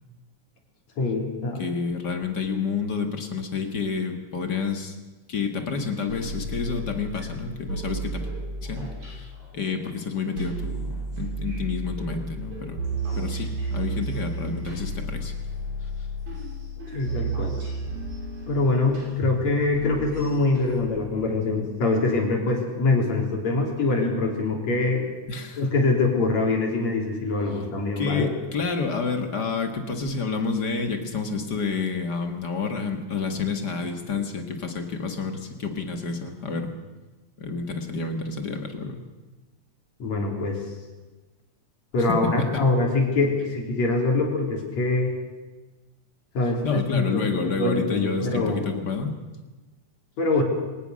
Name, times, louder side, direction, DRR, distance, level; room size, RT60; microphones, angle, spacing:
voice 1, 1.0-1.7 16.9-17.6 18.5-25.0 25.6-28.3 40.0-40.6 41.9-45.1 46.3-48.6 50.2-50.4, left 3 dB, 65° left, 1 dB, 4.8 m, -24 dB
voice 2, 1.6-5.0 5.3-8.2 8.6-15.3 25.3-25.6 28.0-36.7 37.4-39.0 42.1-42.7 46.6-49.1, left 5 dB, 40° left, 5 dB, 2.1 m, -29 dB
sound 1, 6.1-9.4 9.8-9.9 10.4-20.8, right 2 dB, 75° right, 7.7 m, -33 dB
23.0 x 19.0 x 6.5 m, 1.2 s
omnidirectional pair, 3.4 m